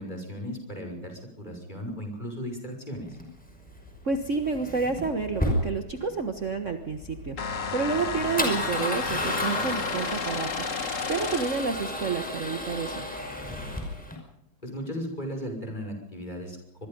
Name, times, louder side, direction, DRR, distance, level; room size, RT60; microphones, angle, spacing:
voice 1, 0.0-3.2 14.6-16.9, equal, 20° left, 4 dB, 6.0 m, -36 dB
Male speech man speaking / Car / Engine starting, 3.1-14.2, left 1 dB, 5° left, 5.5 m, -33 dB
voice 2, 4.0-7.4 7.7-10.5 11.1-13.0, right 4 dB, 40° right, 6 dB, 1.6 m, -29 dB
sound 1, 7.4-11.8, left 6 dB, 40° left, 1.7 m, -32 dB
25.0 x 22.0 x 5.4 m, 0.73 s
omnidirectional pair, 2.2 m